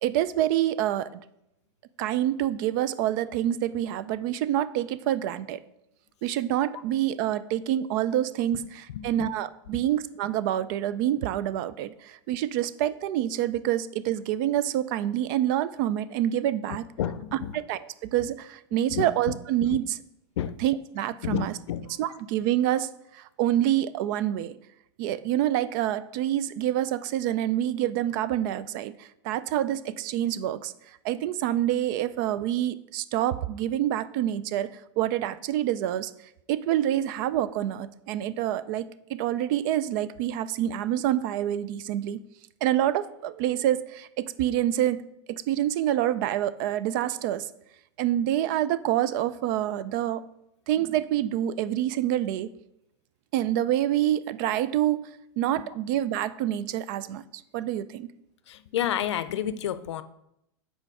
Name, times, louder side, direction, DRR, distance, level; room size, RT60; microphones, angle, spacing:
voice 1, 0.0-1.1 2.0-5.6 6.2-16.9 17.3-20.0 20.6-21.6 22.0-24.6 25.0-30.7 31.0-36.1 36.5-42.2 42.6-45.0 45.3-47.5 48.0-50.2 50.7-52.5 53.3-55.1 55.4-58.1, right 12 dB, 50° right, 15 dB, 0.4 m, -27 dB
voice 2, 17.0-17.5 19.0-19.1 20.4-20.5 21.2-21.8 58.5-60.0, left 10 dB, 90° left, 14 dB, 0.5 m, -29 dB
6.7 x 4.5 x 4.7 m, 0.82 s
supercardioid pair, 140°, 14 cm